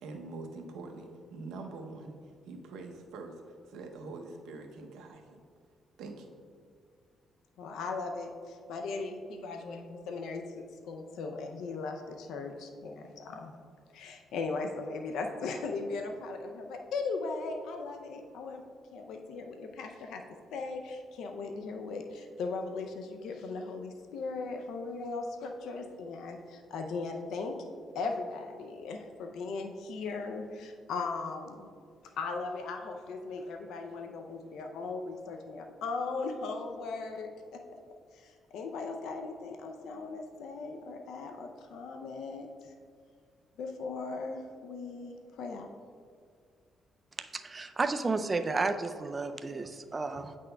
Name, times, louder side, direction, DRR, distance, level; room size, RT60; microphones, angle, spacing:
voice 1, 0.0-5.4 6.0-6.3, right 3 dB, 90° right, 3 dB, 0.7 m, -44 dB
voice 2, 7.6-13.5 13.9-18.6 18.9-20.2 20.5-27.6 27.9-31.7 32.2-37.8 38.1-42.5 43.6-45.7, left 4 dB, 80° left, 4 dB, 0.4 m, -38 dB
voice 3, 47.3-50.4, right 3 dB, 30° right, 7 dB, 0.4 m, -32 dB
8.6 x 6.0 x 2.2 m, 2.2 s
cardioid pair, 90°, 0 cm